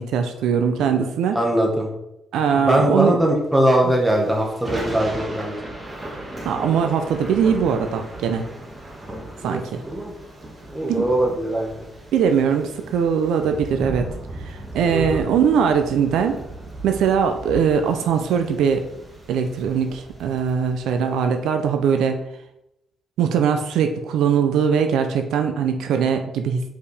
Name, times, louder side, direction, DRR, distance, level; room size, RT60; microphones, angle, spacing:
voice 1, 0.0-1.4 2.3-3.2 3.8-3.9 6.4-8.4 9.4-9.8 10.9-11.1 12.1-14.1 14.4-16.4 16.8-18.8 19.3-22.2 23.2-26.7, right 7 dB, 80° right, 6 dB, 0.7 m, -21 dB
voice 2, 1.3-1.9 2.7-5.6 9.4-10.1 10.7-11.9 14.9-15.2, right 1 dB, 5° right, 0 dB, 1.7 m, -21 dB
Thunder / Rain, 3.8-21.3, right 1 dB, 25° right, 2.1 m, -36 dB
5.2 x 5.0 x 5.0 m, 0.85 s
cardioid pair, 90°, 0 cm